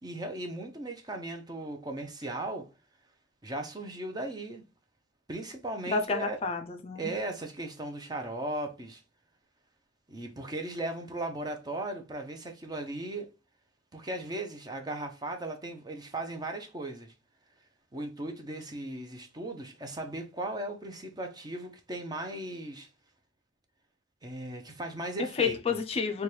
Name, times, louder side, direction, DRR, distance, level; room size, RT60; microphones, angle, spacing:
voice 1, 0.0-2.7 3.4-4.6 5.3-6.4 7.0-9.0 10.1-13.3 13.9-17.1 17.9-22.9 24.2-25.8, right 2 dB, 20° right, 0.5 m, -37 dB
voice 2, 5.9-7.1 25.4-26.2, left 5 dB, 30° left, 0.3 m, -30 dB
4.2 x 2.2 x 3.1 m
head